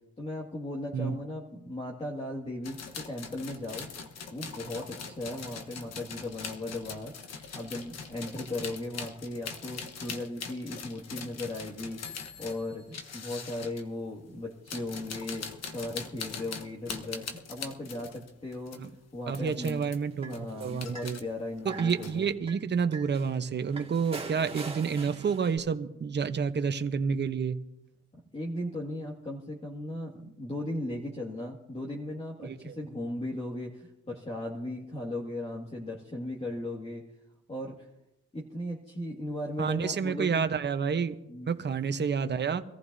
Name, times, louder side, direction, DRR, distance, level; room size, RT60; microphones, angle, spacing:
voice 1, 0.2-3.9 4.3-7.1 7.5-12.0 12.4-15.5 15.7-18.8 19.1-19.9 20.2-22.2 28.3-37.0 37.5-37.9 38.3-40.5 41.3-41.5, left 1 dB, 20° left, -3 dB, 2.1 m, -37 dB
sound 1, 2.6-13.8 14.5-18.9 19.3-20.0 20.2-21.2 21.6-22.3, left 5 dB, 60° left, 1.3 m, -42 dB
sound 2, 19.3-21.2 21.6-22.2 22.5-22.6 22.9-25.6, right 3 dB, 20° right, 2.1 m, -43 dB
voice 2, 19.3-21.2 21.6-27.6 32.4-32.8 39.6-41.2 41.5-42.6, right 6 dB, 35° right, 9 dB, 0.9 m, -29 dB
24.5 x 14.5 x 2.7 m, 0.89 s
cardioid pair, 90°, 30 cm